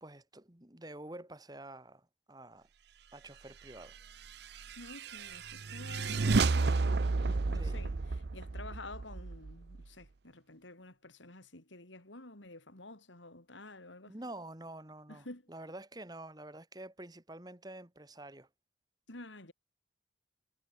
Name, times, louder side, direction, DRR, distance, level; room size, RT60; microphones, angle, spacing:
voice 1, 0.0-2.7 3.1-4.0 7.5-7.9 14.1-18.5, right 1 dB, 20° right, 1.9 m, -48 dB
sound 1, 4.2-9.8, right 3 dB, 60° right, 0.6 m, -32 dB
voice 2, 4.8-14.2 15.1-15.4 19.1-19.5, left 2 dB, 80° left, 4.1 m, -50 dB
head